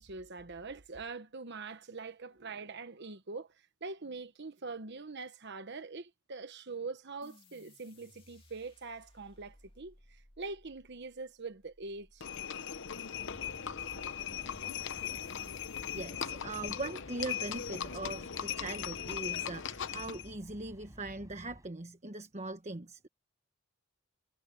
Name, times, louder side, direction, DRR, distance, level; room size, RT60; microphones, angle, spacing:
voice 1, 0.0-12.3, right 4 dB, 55° right, 1.1 m, -43 dB
sound 1, 7.2-16.1, left 1 dB, 25° left, 2.6 m, -62 dB
Livestock farm animals working animals, 12.2-20.3, left 9 dB, 60° left, 0.9 m, -39 dB
sound 2, 13.1-21.7, equal, 15° right, 5.5 m, -54 dB
voice 2, 15.9-23.1, right 2 dB, 35° right, 1.2 m, -41 dB
head